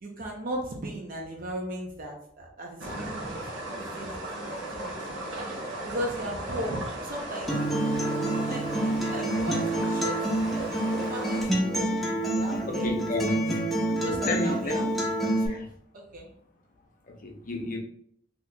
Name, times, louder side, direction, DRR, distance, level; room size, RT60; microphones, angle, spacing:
voice 1, 0.0-3.4 3.7-4.2 4.5-5.2 5.8-7.6 8.2-10.3 11.1-13.5 14.0-14.8 15.2-15.6 15.9-16.3, right 1 dB, 45° right, 0.6 m, -37 dB
sound 1, 2.8-11.4, right 1 dB, 70° right, 1.0 m, -36 dB
Acoustic guitar, 7.5-15.5, right 1 dB, ahead, 0.6 m, -27 dB
voice 2, 12.7-13.4 14.0-14.9 15.5-15.6 17.1-17.8, left 2 dB, 45° left, 0.6 m, -32 dB
3.9 x 2.8 x 2.2 m
head